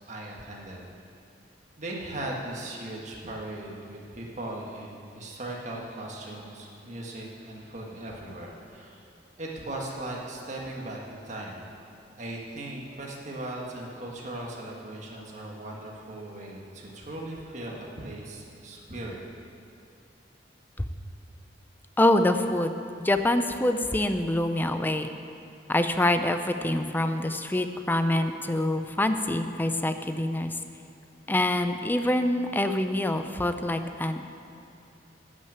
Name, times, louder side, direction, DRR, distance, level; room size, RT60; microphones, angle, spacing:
voice 1, 0.1-0.9 1.8-9.0 9.4-11.6 12.2-19.2, right 1 dB, 40° right, -2 dB, 1.7 m, -38 dB
voice 2, 22.0-22.7 23.0-25.1 25.7-30.5 31.3-34.2, left 1 dB, 10° left, 8 dB, 0.5 m, -25 dB
11.5 x 6.3 x 8.9 m, 2.5 s
head